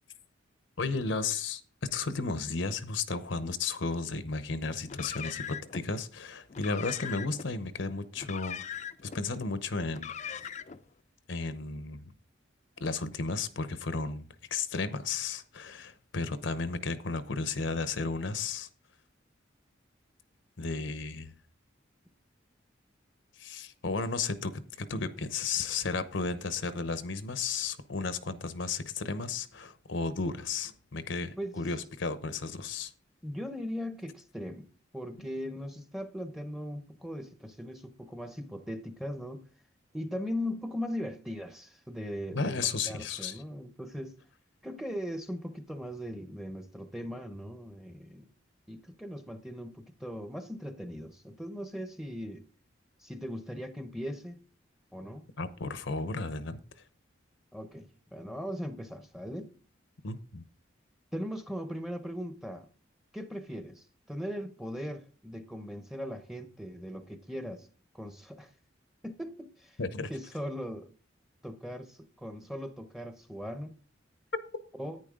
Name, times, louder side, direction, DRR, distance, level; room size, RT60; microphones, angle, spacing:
voice 1, 0.8-1.6 1.9-8.6 9.0-10.5 11.3-12.1 12.8-18.7 20.6-21.3 23.4-32.9 42.3-43.4 55.4-56.6 60.0-60.4 69.8-70.1, left 4 dB, 70° left, 0.8 m, -34 dB
Car, 4.8-5.8 6.5-7.5 8.2-9.2 9.9-10.8, left 8 dB, 35° left, 0.5 m, -40 dB
voice 2, 33.2-34.7 34.9-39.5 39.9-44.2 44.6-48.3 48.7-52.5 53.0-54.4 54.9-55.3 57.5-59.5 61.1-62.7 63.1-67.7 67.9-68.5 69.0-69.8 70.1-70.9 71.4-73.8 74.8-75.0, equal, ahead, 0.8 m, -39 dB
10.5 x 9.2 x 3.7 m
head